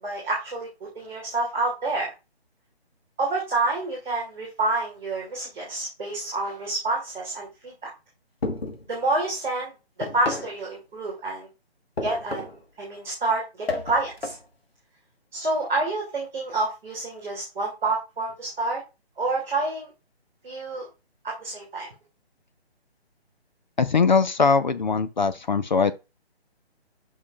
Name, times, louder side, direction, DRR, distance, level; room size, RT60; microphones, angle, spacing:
voice 1, 0.0-2.1 3.2-7.9 8.9-9.7 10.1-11.5 12.0-12.5 12.8-14.4 15.3-18.8 19.2-19.9 20.4-20.9 21.2-21.9, right 2 dB, ahead, 0.5 m, -28 dB
sound 1, 8.4-8.9 10.0-10.6 12.0-12.6 13.7-14.4, left 3 dB, 65° left, 1.5 m, -31 dB
voice 2, 23.8-25.9, left 5 dB, 45° left, 0.5 m, -21 dB
9.5 x 5.6 x 2.4 m
figure-of-eight pair, 145°, 32 cm